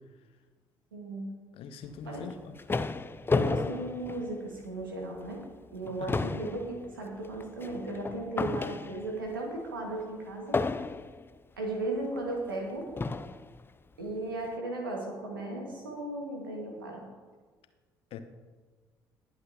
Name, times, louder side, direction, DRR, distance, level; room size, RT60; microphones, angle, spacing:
voice 1, 0.9-1.3 2.0-2.3 3.3-5.4 5.7-10.6 11.6-12.9 14.0-17.0, right 2 dB, 85° right, 0 dB, 1.8 m, -36 dB
voice 2, 1.6-2.6 6.0-6.2 18.1-18.2, left 6 dB, 60° left, 9 dB, 1.0 m, -42 dB
sound 1, 2.1-4.8 5.3-5.4 5.7-9.3 10.5-11.3 12.2-12.3 13.0-13.5, left 3 dB, 20° left, 0.5 m, -32 dB
20.0 x 8.0 x 2.9 m, 1.4 s
figure-of-eight pair, 45°, 11 cm